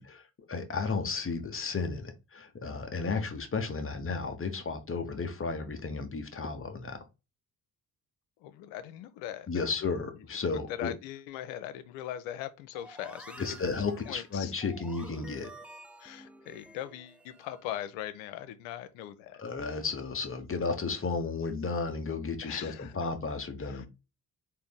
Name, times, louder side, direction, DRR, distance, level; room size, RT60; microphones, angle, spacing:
voice 1, 0.0-7.0 9.5-10.9 13.4-15.5 19.4-23.9, left 4 dB, 25° left, 1.0 m, -33 dB
voice 2, 8.4-9.7 10.8-13.8 14.1-14.5 16.0-19.8 22.4-22.9 23.6-23.9, left 11 dB, 70° left, 0.7 m, -41 dB
sound 1, 12.7-17.6, right 1 dB, 5° right, 0.4 m, -50 dB
3.8 x 2.6 x 3.5 m
figure-of-eight pair, 45°, 49 cm